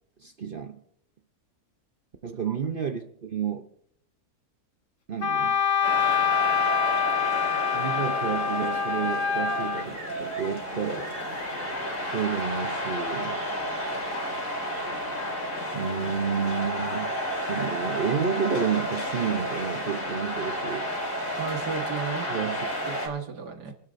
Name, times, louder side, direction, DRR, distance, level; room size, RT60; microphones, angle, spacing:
voice 1, 0.2-0.8 2.2-3.7 5.1-5.6 7.7-11.1 12.1-13.4 15.7-20.9 22.3-22.6, right 7 dB, 45° right, 0.7 m, -30 dB
Wind instrument woodwind instrument, 5.2-9.9, left 7 dB, 50° left, 1.4 m, -25 dB
sound 1, 5.8-23.1, equal, 80° left, 4.9 m, -32 dB
voice 2, 21.4-22.3 22.9-23.7, right 6 dB, 80° right, 2.2 m, -34 dB
28.0 x 12.0 x 2.6 m
omnidirectional pair, 1.7 m